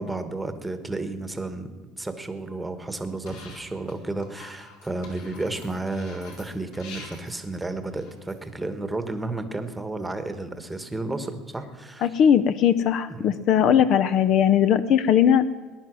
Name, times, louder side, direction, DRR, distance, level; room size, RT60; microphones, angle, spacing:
voice 1, 0.0-12.2 13.1-13.3, right 2 dB, 5° right, 9 dB, 1.2 m, -32 dB
sound 1, 3.3-3.9 4.2-8.5, left 3 dB, 75° left, 4.4 m, -45 dB
voice 2, 12.0-15.5, left 9 dB, 45° left, 14 dB, 0.6 m, -19 dB
19.5 x 11.0 x 6.1 m, 1.4 s
cardioid pair, 155°, 0 cm